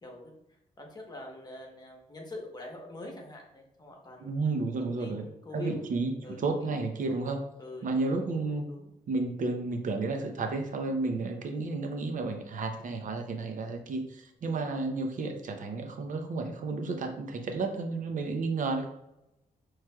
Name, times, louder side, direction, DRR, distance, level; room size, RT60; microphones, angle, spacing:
voice 1, 0.0-4.3 4.8-5.8 6.2-6.4 7.0-7.2 7.6-8.9, left 2 dB, 25° left, 1 dB, 1.0 m, -44 dB
voice 2, 4.2-5.2 5.5-7.4 7.8-8.6 9.1-18.9, right 3 dB, 60° right, 5 dB, 0.7 m, -32 dB
6.0 x 3.1 x 2.3 m, 0.84 s
cardioid pair, 105°, 15 cm